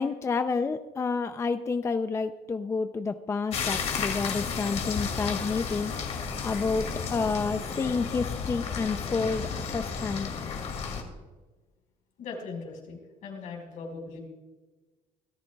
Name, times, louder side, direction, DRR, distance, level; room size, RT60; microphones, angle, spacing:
voice 1, 0.0-5.9 6.4-10.3, left 4 dB, 20° left, 9 dB, 0.5 m, -29 dB
sound 1, 3.5-11.0, left 6 dB, 55° left, 2.4 m, -33 dB
voice 2, 12.2-14.2, left 4 dB, 75° left, 1 dB, 5.0 m, -40 dB
25.0 x 13.5 x 2.3 m, 1.3 s
cardioid pair, 145°, 13 cm